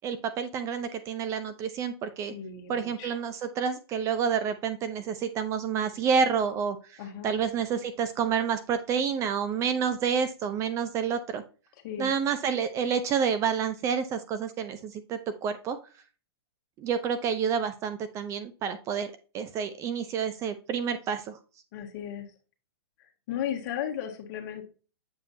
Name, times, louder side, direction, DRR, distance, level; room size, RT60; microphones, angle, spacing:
voice 1, 0.0-2.3 2.7-6.8 7.2-11.4 12.0-15.8 16.8-21.4, right 7 dB, 20° right, 11 dB, 0.5 m, -29 dB
voice 2, 2.3-3.2 7.0-7.3 11.8-12.1 21.7-22.3 23.0-24.6, left 9 dB, 45° left, 2 dB, 1.6 m, -35 dB
7.3 x 5.0 x 2.7 m, 0.35 s
hypercardioid pair, 140°, 13 cm